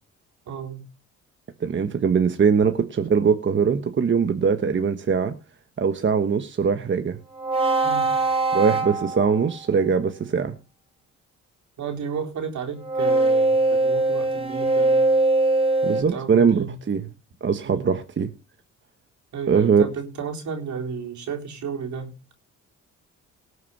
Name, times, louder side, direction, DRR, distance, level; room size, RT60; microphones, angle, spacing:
voice 1, 0.5-0.9 7.8-8.2 11.8-15.1 16.1-16.8 17.6-17.9 19.3-22.1, right 6 dB, 70° right, 3.9 m, -33 dB
voice 2, 1.6-5.3 5.8-7.2 8.5-10.6 15.8-17.0 17.4-18.3 19.5-19.8, right 6 dB, 40° right, 1.3 m, -21 dB
sound 1, 7.4-9.6 12.8-16.0, right 2 dB, 20° right, 3.5 m, -21 dB
19.0 x 6.5 x 5.5 m
cardioid pair, 90°, 30 cm